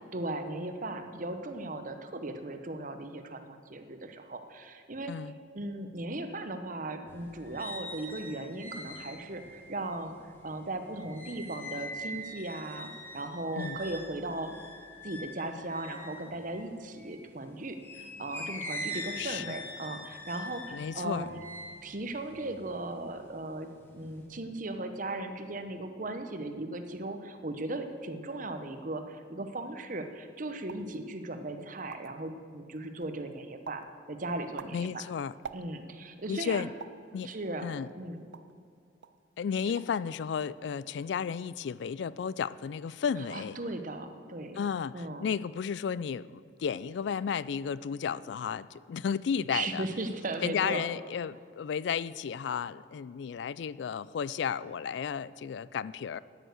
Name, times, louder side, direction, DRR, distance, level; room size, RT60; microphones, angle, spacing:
voice 1, 0.1-5.1 5.5-14.5 15.0-21.4 21.8-23.7 23.9-35.0 35.5-36.6 37.2-37.7 37.9-38.2 39.6-39.7 43.3-44.6 44.9-45.3 49.5-50.8, right 2 dB, 40° right, 8 dB, 0.8 m, -37 dB
voice 2, 5.1-5.4 13.6-13.8 19.2-19.5 20.7-21.3 34.7-35.3 36.3-36.7 37.1-37.3 37.6-37.9 39.4-43.6 44.6-49.8 50.4-56.2, left 7 dB, 60° left, 18 dB, 0.3 m, -33 dB
sound 1, 7.1-17.2 17.8-23.3 23.7-24.3, equal, 10° left, 1.4 m, -43 dB
sound 2, 30.6-31.0 31.5-31.6 31.7-32.3 32.8-33.2 33.6-33.9 34.3-36.0 36.8-37.1 37.7-38.6 39.0-39.2 39.5-40.0 40.3-40.8, right 6 dB, 65° right, 0.4 m, -47 dB
9.1 x 8.9 x 8.0 m, 2.3 s
head